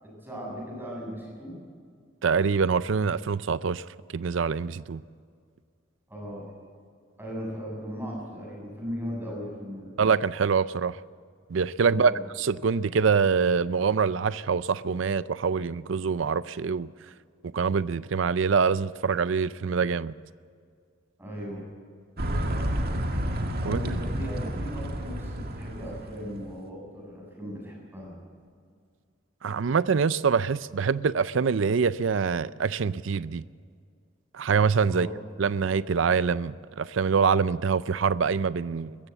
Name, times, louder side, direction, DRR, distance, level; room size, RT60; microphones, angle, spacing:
voice 1, 0.0-1.6 6.1-6.5 7.2-9.9 11.8-12.2 21.2-21.7 23.6-28.2 34.9-35.2, equal, 10° right, -3 dB, 7.5 m, -37 dB
voice 2, 2.2-3.8 4.1-5.0 10.0-11.0 11.5-16.9 17.5-20.1 23.7-23.8 29.4-33.4 34.3-35.1 35.4-39.0, right 5 dB, 70° right, 16 dB, 0.5 m, -25 dB
sound 1, 22.2-26.5, equal, 50° right, 2.0 m, -30 dB
21.5 x 15.0 x 8.2 m, 2.1 s
head